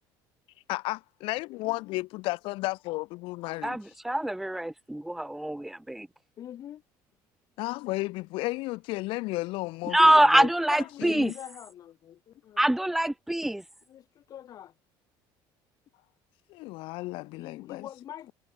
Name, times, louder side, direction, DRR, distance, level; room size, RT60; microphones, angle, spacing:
voice 1, 0.7-3.8 7.6-10.5 11.0-11.3 16.5-17.9, left 21 dB, 65° left, 2.3 m, -33 dB
voice 2, 3.6-6.1 9.9-11.3 12.6-13.6, right 1 dB, 5° right, 0.5 m, -24 dB
voice 3, 6.4-6.8 10.0-12.6 13.9-14.7 17.3-18.3, left 11 dB, 40° left, 2.9 m, -43 dB
cardioid pair, 155°, 10 cm